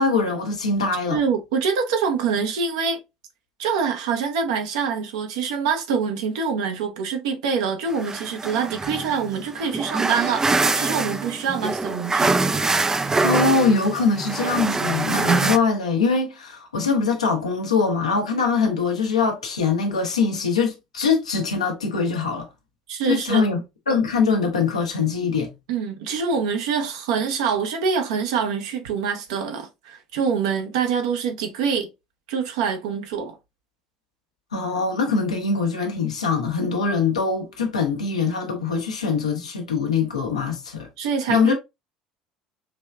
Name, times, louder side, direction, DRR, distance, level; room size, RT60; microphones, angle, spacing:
voice 1, 0.0-1.2 13.2-22.5 23.1-23.6 23.9-25.5 34.5-40.9 41.3-41.5, left 4 dB, 80° left, 0.9 m, -22 dB
voice 2, 1.1-3.0 3.6-12.4 22.9-23.5 25.7-31.9 32.3-33.4 41.0-41.5, right 6 dB, 65° right, 0.9 m, -25 dB
sound 1, 7.9-15.6, right 3 dB, 15° right, 0.4 m, -24 dB
5.1 x 3.1 x 2.3 m
figure-of-eight pair, 65°, 3 cm